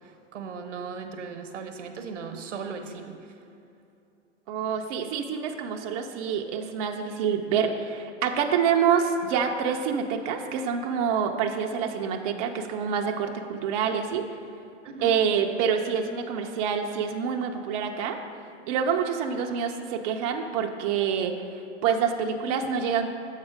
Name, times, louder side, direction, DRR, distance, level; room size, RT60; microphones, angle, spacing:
voice 1, 0.0-3.1 14.8-15.2, right 5 dB, 85° right, 6 dB, 0.9 m, -37 dB
voice 2, 4.5-14.2 15.0-18.2 18.7-21.4 21.8-23.1, right 7 dB, 35° right, 3 dB, 0.4 m, -27 dB
7.3 x 4.2 x 4.9 m, 2.7 s
hypercardioid pair, 125°, 36 cm